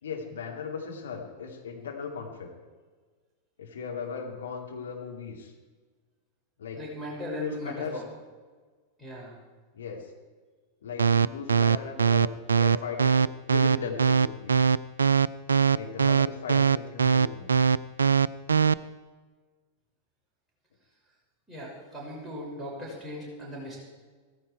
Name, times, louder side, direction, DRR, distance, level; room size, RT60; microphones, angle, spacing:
voice 1, 0.0-2.5 3.6-5.5 6.6-6.8 7.4-8.0 9.7-10.1 10.8-14.6 15.7-17.6, left 6 dB, 65° left, 0 dB, 2.7 m, -37 dB
voice 2, 6.8-8.0 9.0-9.3 21.5-23.8, equal, 5° right, -6 dB, 6.1 m, -38 dB
sound 1, 11.0-18.7, right 6 dB, 75° right, 0.3 m, -21 dB
16.5 x 15.0 x 4.6 m, 1.5 s
figure-of-eight pair, 90°, 0 cm